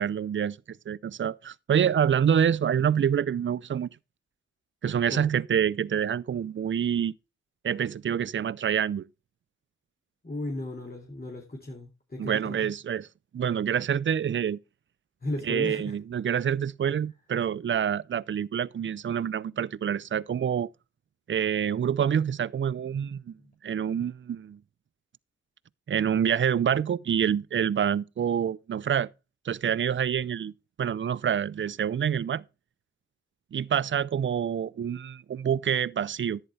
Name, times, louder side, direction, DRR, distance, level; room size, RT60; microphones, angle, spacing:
voice 1, 0.0-3.9 4.8-7.1 7.6-9.0 12.2-13.1 13.3-14.6 15.5-20.7 21.3-23.4 23.6-24.6 25.9-29.1 29.5-30.5 30.8-32.4 33.5-36.4, right 8 dB, 40° right, 0.5 m, -27 dB
voice 2, 10.2-12.7 15.2-16.0, left 2 dB, 30° left, 2.6 m, -35 dB
11.0 x 9.0 x 3.3 m
cardioid pair, 55°, 29 cm